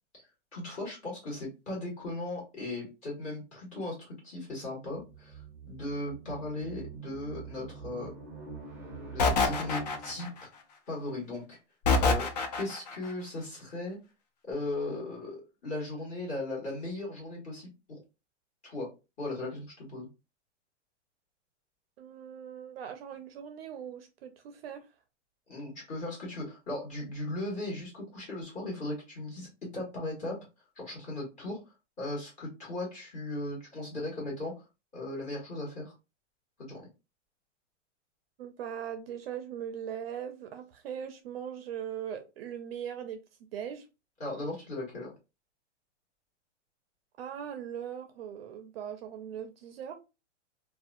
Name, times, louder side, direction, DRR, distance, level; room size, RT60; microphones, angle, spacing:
voice 1, 0.5-8.1 9.1-10.3 10.9-11.6 12.0-12.3 12.6-14.0 14.5-18.0 18.6-18.9 19.2-20.1 25.5-30.4 30.7-31.6 32.0-34.6 34.9-35.9 36.6-36.9 44.2-45.1, left 2 dB, 20° left, 1.4 m, -37 dB
sound 1, 4.9-10.5, right 5 dB, 5° right, 0.7 m, -45 dB
sound 2, 9.2-10.4 11.9-13.0, left 3 dB, 35° left, 0.4 m, -26 dB
voice 2, 22.0-24.8 38.4-43.2 43.5-43.9 47.2-50.0, right 9 dB, 55° right, 0.5 m, -40 dB
2.6 x 2.2 x 2.4 m
hypercardioid pair, 155°, 36 cm